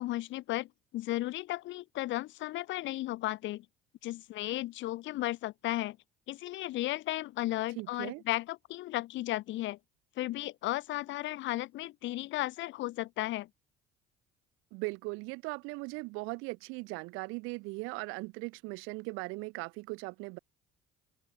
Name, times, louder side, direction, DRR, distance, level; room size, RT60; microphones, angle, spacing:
voice 1, 0.0-3.7 4.0-6.0 6.3-9.8 10.2-13.5, left 16 dB, 65° left, 2.0 m, -35 dB
voice 2, 7.8-8.2 14.7-20.4, right 27 dB, 75° right, 2.4 m, -39 dB
supercardioid pair, 75°, 21 cm